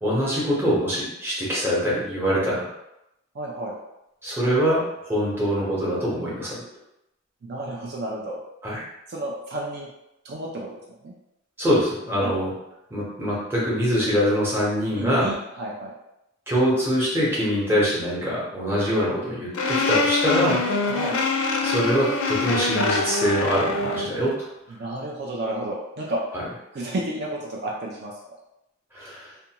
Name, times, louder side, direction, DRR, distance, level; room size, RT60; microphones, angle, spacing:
voice 1, 0.0-2.6 4.2-6.5 8.6-8.8 11.6-12.5 12.9-15.3 16.5-20.6 21.6-24.5 28.9-29.3, equal, 10° right, -7 dB, 0.9 m, -24 dB
voice 2, 3.3-3.8 7.4-8.4 9.1-9.9 10.2-11.1 12.2-12.3 14.9-15.9 20.9-21.2 24.7-26.2 26.7-28.1, right 1 dB, 55° right, -3 dB, 0.4 m, -31 dB
sound 1, 19.5-24.1, left 3 dB, 90° left, 0.4 m, -24 dB
2.5 x 2.2 x 2.8 m, 0.85 s
head